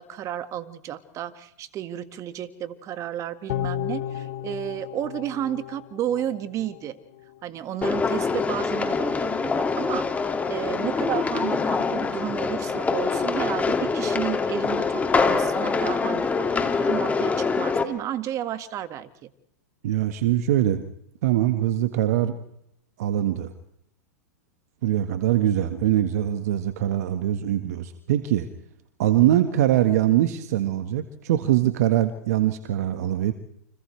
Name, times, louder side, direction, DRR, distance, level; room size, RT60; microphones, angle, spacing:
voice 1, 0.0-7.0 7.4-19.3, right 11 dB, 35° right, 11 dB, 1.8 m, -32 dB
sound 1, 3.5-6.8 7.2-7.3, left 12 dB, 65° left, 2.5 m, -33 dB
sound 2, 7.8-17.8, left 4 dB, 15° left, 2.3 m, -24 dB
voice 2, 19.8-20.8 21.2-22.4 23.0-23.5 24.8-28.5 29.0-33.3, right 12 dB, 60° right, 8 dB, 1.6 m, -22 dB
29.5 x 26.0 x 3.3 m, 0.73 s
hypercardioid pair, 105°, 9 cm